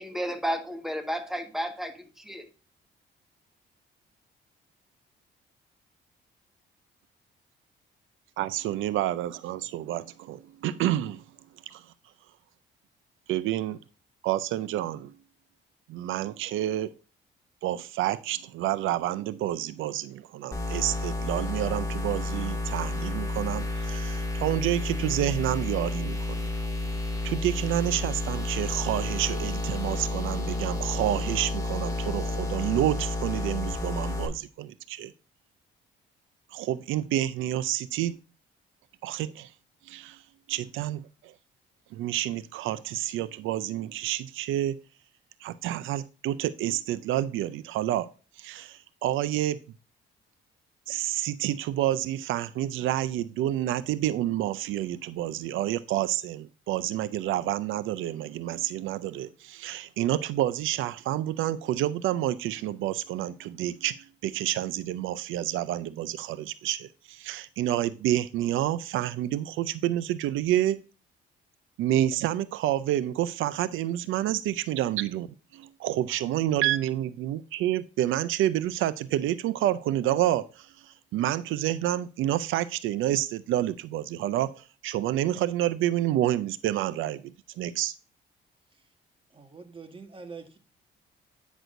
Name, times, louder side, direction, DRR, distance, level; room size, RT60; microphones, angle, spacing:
voice 1, 0.0-2.4, equal, ahead, 1.4 m, -32 dB
voice 2, 8.4-11.2 11.7-11.8 13.3-13.8 14.2-15.1 15.9-16.9 17.6-26.4 27.2-35.1 36.5-38.2 39.0-39.5 39.9-40.2 40.5-41.3 41.9-44.8 45.4-48.1 48.4-49.6 50.9-70.8 71.8-75.3 75.5-87.9, right 13 dB, 85° right, 0.5 m, -29 dB
sound 1, 20.5-34.3, left 2 dB, 15° left, 2.1 m, -31 dB
voice 3, 89.3-90.6, right 4 dB, 25° right, 1.4 m, -45 dB
9.1 x 6.1 x 2.5 m
cardioid pair, 90°, 20 cm